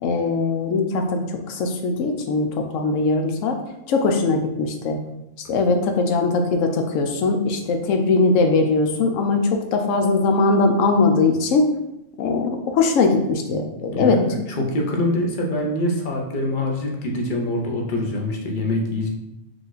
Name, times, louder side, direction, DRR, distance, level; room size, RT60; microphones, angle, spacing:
voice 1, 0.0-3.6 3.9-5.0 5.5-11.7 12.2-14.2, left 3 dB, 85° left, 4 dB, 1.0 m, -20 dB
voice 2, 13.9-19.1, left 1 dB, 45° left, 0 dB, 0.9 m, -24 dB
4.7 x 2.4 x 3.9 m, 0.88 s
omnidirectional pair, 1.3 m